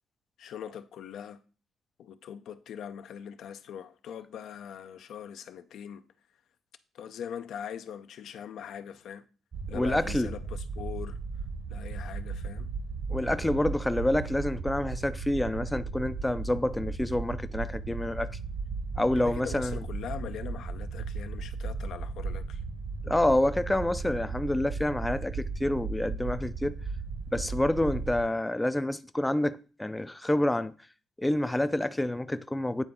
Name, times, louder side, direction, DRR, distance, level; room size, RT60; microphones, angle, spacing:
voice 1, 0.4-1.4 2.0-6.1 6.9-9.3 9.7-11.2 11.7-12.7 19.2-22.6, left 8 dB, 75° left, 0.5 m, -41 dB
sound 1, 9.5-28.3, right 4 dB, 45° right, 1.0 m, -36 dB
voice 2, 9.7-10.3 13.1-18.4 19.0-19.8 23.0-26.8 27.3-30.7 31.2-32.8, left 1 dB, 10° left, 0.4 m, -28 dB
9.2 x 3.9 x 3.6 m
cardioid pair, 90°, 0 cm